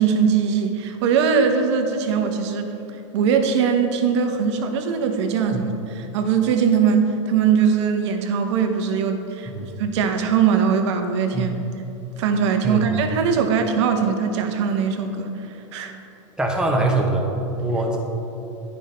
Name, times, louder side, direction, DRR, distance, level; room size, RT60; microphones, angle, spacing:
voice 1, 0.0-2.7 3.1-9.5 9.8-11.5 12.2-15.3 15.7-15.9, right 6 dB, 60° right, 5 dB, 1.0 m, -21 dB
voice 2, 11.3-11.7 12.6-12.8 16.4-17.3 17.6-18.0, right 2 dB, 5° right, -1 dB, 1.2 m, -23 dB
10.0 x 5.4 x 4.3 m, 2.9 s
hypercardioid pair, 115°, 16 cm